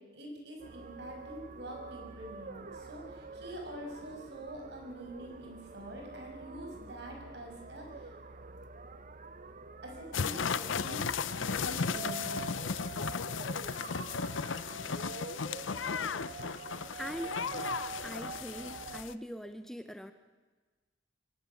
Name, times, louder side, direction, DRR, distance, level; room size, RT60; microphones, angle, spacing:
voice 1, 0.0-8.1 9.8-12.7, right 1 dB, 60° right, 1 dB, 6.5 m, -45 dB
sound 1, 0.6-19.0, right 4 dB, 45° right, 0.8 m, -46 dB
sound 2, 10.1-19.1, left 6 dB, 90° left, 0.7 m, -35 dB
voice 2, 17.0-17.4 18.0-20.1, equal, ahead, 9 dB, 0.7 m, -42 dB
23.0 x 17.5 x 7.0 m, 1.3 s
head